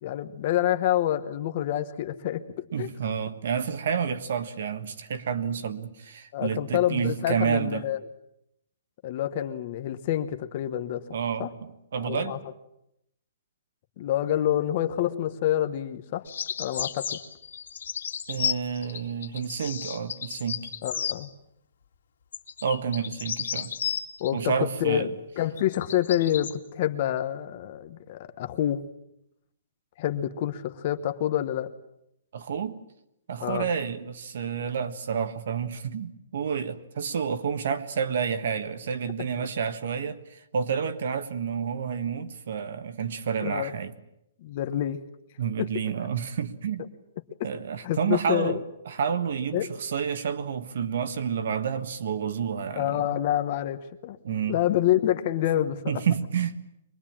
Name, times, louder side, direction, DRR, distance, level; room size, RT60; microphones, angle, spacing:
voice 1, 0.0-2.9 6.3-8.0 9.0-11.0 11.4-11.5 12.0-12.4 14.0-16.3 16.6-17.2 20.8-21.3 24.2-25.1 25.4-28.8 30.0-31.7 33.4-33.7 39.4-39.5 43.4-43.7 44.4-45.0 45.6-45.7 47.8-48.6 49.5-49.7 52.7-54.2 54.5-56.0, left 12 dB, 30° left, 1.1 m, -27 dB
voice 2, 2.7-7.8 11.1-12.4 18.3-20.7 22.6-23.7 24.3-25.1 32.3-32.8 33.3-43.9 45.4-46.8 47.4-48.6 48.9-53.1 54.2-54.6 55.9-56.6, right 7 dB, 50° right, 1.6 m, -29 dB
sound 1, 16.3-21.2 22.3-24.3 25.6-26.5, left 8 dB, 65° left, 2.4 m, -33 dB
24.0 x 20.5 x 8.8 m
hypercardioid pair, 180°, 0 cm